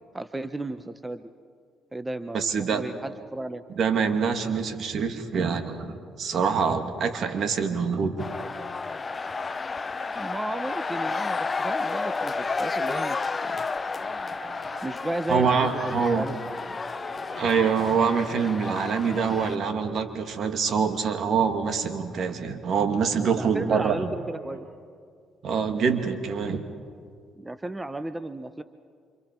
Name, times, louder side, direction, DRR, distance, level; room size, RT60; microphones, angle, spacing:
voice 1, 0.1-1.3 1.9-3.6 10.1-13.6 14.8-16.6 23.3-24.7 27.4-28.6, right 1 dB, 15° right, 11 dB, 1.0 m, -34 dB
voice 2, 2.3-2.8 3.8-8.4 15.3-16.3 17.4-24.1 25.4-26.6, right 6 dB, 60° right, 7 dB, 2.1 m, -25 dB
sound 1, 8.2-19.6, left 4 dB, 35° left, 0.8 m, -31 dB
sound 2, 8.3-9.5 10.0-21.7 23.3-24.6, right 2 dB, 90° right, 4.4 m, -48 dB
29.0 x 26.5 x 4.6 m, 2.2 s
supercardioid pair, 60°, 0 cm